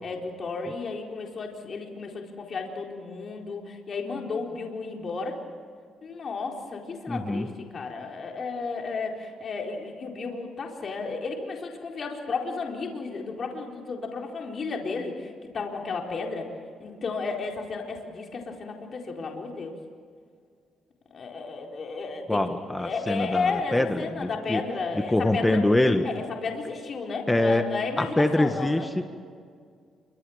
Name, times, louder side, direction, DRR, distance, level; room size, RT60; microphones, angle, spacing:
voice 1, 0.0-5.4 6.0-15.3 15.5-16.5 16.8-19.7 21.1-22.4 22.8-25.6 26.0-28.9, left 4 dB, 45° left, 1 dB, 4.3 m, -33 dB
voice 2, 7.1-7.5 22.3-24.6 24.9-26.1 27.3-27.6 28.0-29.1, left 1 dB, 10° left, 6 dB, 1.6 m, -24 dB
28.5 x 25.5 x 7.3 m, 2.1 s
cardioid pair, 90°, 0 cm